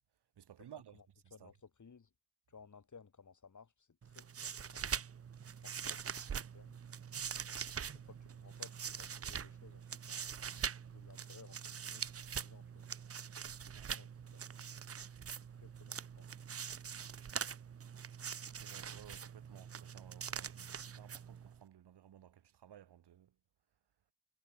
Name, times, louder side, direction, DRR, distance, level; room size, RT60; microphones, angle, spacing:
voice 1, 0.4-1.0 1.2-1.5 13.7-13.9 18.5-23.3, right 10 dB, 60° right, 2.9 m, -58 dB
voice 2, 0.9-2.1 2.5-5.1 5.6-6.8 7.9-10.4 10.8-12.9 13.7-14.5 15.5-16.3, left 5 dB, 40° left, 6.1 m, -60 dB
sound 1, 4.0-21.6, right 7 dB, 30° right, 0.9 m, -44 dB
supercardioid pair, 55°, 45 cm